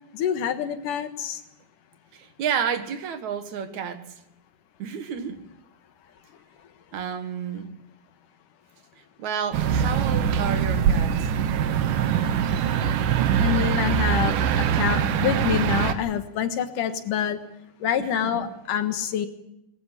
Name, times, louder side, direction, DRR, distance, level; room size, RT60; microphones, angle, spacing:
voice 1, 0.1-1.4 13.4-17.4 17.8-19.3, left 9 dB, 80° left, 3.1 m, -26 dB
voice 2, 2.1-4.0 4.8-5.4 6.9-7.7 9.2-11.2 18.0-18.5, right 7 dB, 65° right, 2.9 m, -30 dB
sound 1, 9.5-15.9, right 8 dB, 90° right, 2.7 m, -23 dB
21.0 x 14.0 x 9.9 m
omnidirectional pair, 3.6 m